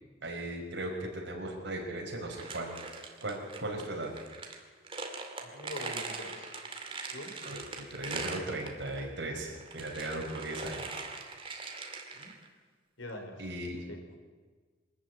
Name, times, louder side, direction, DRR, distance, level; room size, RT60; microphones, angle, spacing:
voice 1, 0.2-2.8 3.2-4.1 7.5-10.9 13.4-13.8, right 1 dB, 60° right, 0 dB, 4.8 m, -37 dB
sound 1, 2.3-9.0 9.5-12.5, right 3 dB, 30° right, 2.3 m, -41 dB
voice 2, 5.4-6.5 7.1-7.4 12.1-12.4 13.0-13.4 13.9-14.2, left 1 dB, 85° left, 5 dB, 4.0 m, -44 dB
23.5 x 13.5 x 9.2 m, 1.5 s
head